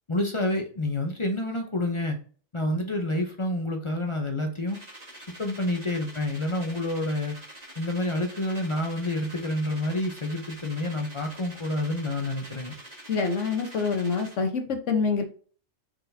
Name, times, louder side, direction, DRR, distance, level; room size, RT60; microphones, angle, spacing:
voice 1, 0.1-2.2 2.5-4.8 5.4-7.3 7.8-12.7, left 1 dB, 35° left, 4 dB, 0.5 m, -28 dB
sound 1, 4.7-14.4, right 1 dB, 30° right, 1.5 m, -46 dB
voice 2, 13.1-15.2, left 5 dB, 65° left, 5 dB, 1.2 m, -26 dB
4.5 x 4.1 x 2.6 m, 0.42 s
omnidirectional pair, 1.4 m